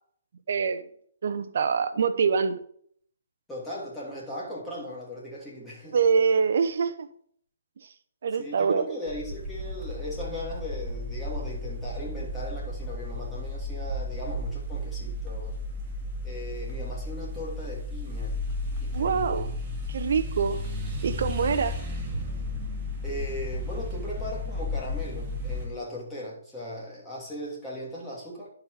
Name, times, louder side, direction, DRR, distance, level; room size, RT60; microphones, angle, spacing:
voice 1, 0.5-0.9 1.2-2.6 5.9-7.1 8.2-9.0 18.9-19.5 19.9-20.6 21.0-21.8, right 6 dB, 60° right, 11 dB, 0.8 m, -25 dB
voice 2, 3.5-6.0 8.4-15.5 16.2-18.3 18.8-19.5 23.0-28.5, left 1 dB, 5° left, -7 dB, 2.8 m, -38 dB
sound 1, 9.1-25.7, left 1 dB, 20° right, 2.3 m, -33 dB
10.5 x 4.8 x 4.8 m, 0.63 s
hypercardioid pair, 150°, 0 cm